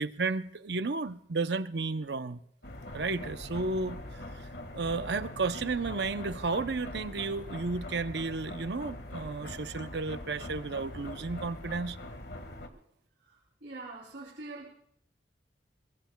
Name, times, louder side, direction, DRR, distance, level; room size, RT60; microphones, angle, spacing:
voice 1, 0.0-2.4 2.9-4.0 4.4-4.5 4.7-12.0, right 3 dB, 70° right, 11 dB, 0.7 m, -33 dB
sound 1, 2.6-12.7, left 1 dB, 65° left, 1.7 m, -42 dB
voice 2, 13.6-14.7, right 2 dB, 90° right, -3 dB, 3.2 m, -43 dB
22.0 x 21.5 x 2.3 m, 0.71 s
head